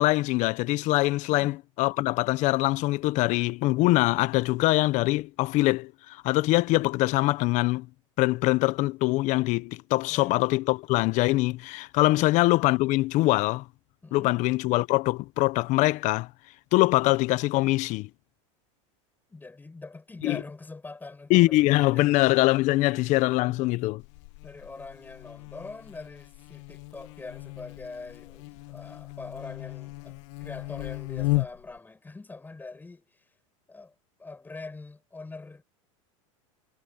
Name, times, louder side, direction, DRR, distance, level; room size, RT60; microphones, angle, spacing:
voice 1, 0.0-7.9 8.2-13.6 14.1-16.3 16.7-18.1 20.2-20.4 21.3-24.0, left 19 dB, 50° left, 0.8 m, -23 dB
voice 2, 9.9-10.3 14.0-14.3 19.3-22.1 22.7-23.1 24.4-33.3 33.7-35.6, left 3 dB, 10° left, 5.2 m, -43 dB
Buzz, 24.0-31.8, left 23 dB, 65° left, 1.2 m, -35 dB
supercardioid pair, 125°, 16 cm